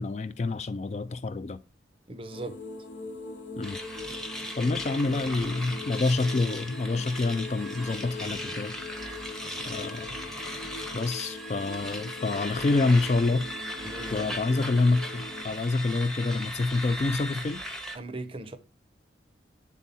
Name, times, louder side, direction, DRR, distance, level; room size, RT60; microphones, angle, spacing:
voice 1, 0.0-1.6 3.6-3.8 4.6-8.8 9.6-10.1 10.9-13.5 14.1-17.6, left 3 dB, 35° left, 0.3 m, -27 dB
voice 2, 2.1-2.6 13.8-14.4 17.9-18.6, right 2 dB, 30° right, 0.6 m, -39 dB
sound 1, 2.3-15.4, left 3 dB, 80° left, 0.9 m, -42 dB
sound 2, 3.6-18.0, equal, 5° left, 0.7 m, -38 dB
8.4 x 3.7 x 4.1 m
head